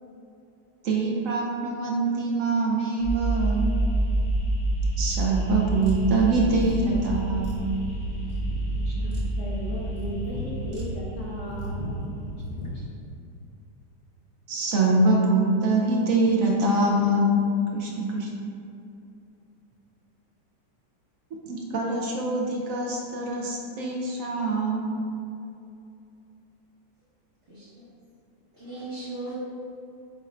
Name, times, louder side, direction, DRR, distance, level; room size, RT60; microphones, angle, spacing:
voice 1, 0.8-3.7 5.0-7.6 14.5-17.4 17.7-18.3 21.5-25.0, right 2 dB, 65° right, -2 dB, 0.8 m, -24 dB
sound 1, 3.0-12.3, right 1 dB, 80° left, 1.6 m, -28 dB
sound 2, 5.4-12.7, right 1 dB, 85° right, 1.8 m, -36 dB
voice 2, 8.7-12.0 12.5-12.9, equal, 65° left, -6 dB, 0.8 m, -36 dB
voice 3, 27.5-27.9 28.5-29.3, right 2 dB, 40° right, -11 dB, 1.1 m, -38 dB
5.1 x 2.5 x 4.2 m, 2.7 s
omnidirectional pair, 1.9 m